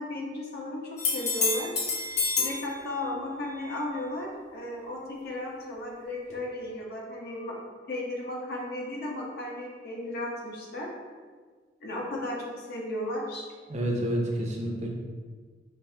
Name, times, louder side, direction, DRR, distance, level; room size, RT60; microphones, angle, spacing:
voice 1, 0.0-1.8 2.4-7.5 7.9-10.9 11.8-13.4, left 1 dB, 60° left, -3 dB, 1.1 m, -35 dB
sound 1, 1.0-2.6 6.3-6.4, left 4 dB, 40° left, 0.9 m, -27 dB
voice 2, 13.7-14.9, right 1 dB, 40° right, -1 dB, 0.7 m, -29 dB
5.5 x 2.7 x 3.4 m, 1.5 s
head